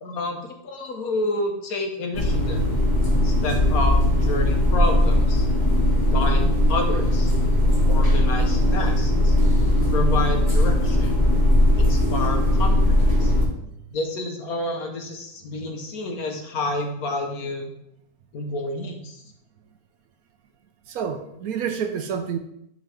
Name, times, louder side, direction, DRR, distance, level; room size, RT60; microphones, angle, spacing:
voice 1, 0.0-2.6 3.2-5.5 6.1-7.3 7.9-9.3 9.9-11.1 11.8-13.3 13.9-17.7 18.3-19.2, left 2 dB, 80° left, 1.5 m, -29 dB
sound 1, 2.1-13.5, left 1 dB, 15° left, 1.5 m, -19 dB
voice 2, 20.9-22.4, right 7 dB, 80° right, 1.1 m, -29 dB
10.5 x 3.8 x 3.5 m
omnidirectional pair, 1.5 m